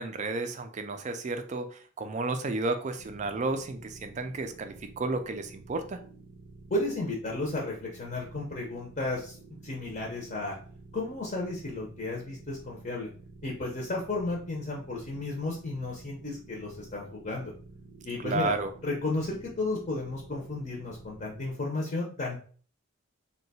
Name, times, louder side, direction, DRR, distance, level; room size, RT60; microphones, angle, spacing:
voice 1, 0.0-6.0 18.2-18.7, right 3 dB, 35° right, 8 dB, 0.3 m, -32 dB
sound 1, 3.0-21.5, right 3 dB, 80° right, 0.6 m, -51 dB
voice 2, 6.7-9.3 9.6-10.6 10.9-13.1 13.4-17.5 18.0-18.5 18.8-22.4, left 2 dB, 35° left, -2 dB, 0.6 m, -33 dB
2.8 x 2.2 x 4.1 m, 0.43 s
head